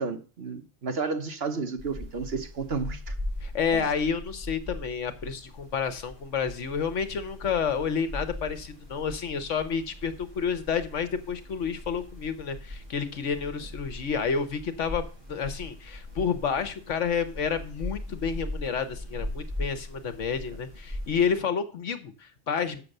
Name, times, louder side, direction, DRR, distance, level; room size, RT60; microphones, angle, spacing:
voice 1, 0.0-3.1 3.7-3.9, right 4 dB, 55° right, 1.3 m, -32 dB
sound 1, 1.8-21.4, left 1 dB, 20° right, 6.4 m, -40 dB
voice 2, 3.4-22.8, left 6 dB, 75° left, 1.4 m, -30 dB
7.6 x 6.8 x 6.7 m
omnidirectional pair, 1.3 m